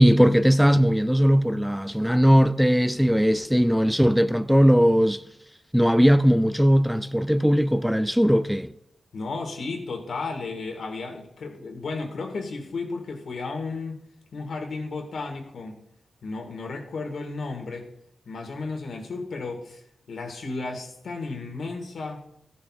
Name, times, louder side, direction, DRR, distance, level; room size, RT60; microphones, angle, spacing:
voice 1, 0.0-5.2 5.7-8.7, equal, ahead, 0.3 m, -19 dB
voice 2, 9.1-14.0 14.3-15.8 16.2-17.9 18.3-19.8 20.1-22.2, left 3 dB, 75° left, 1.8 m, -33 dB
14.0 x 10.0 x 2.4 m
wide cardioid pair, 115°, 0 cm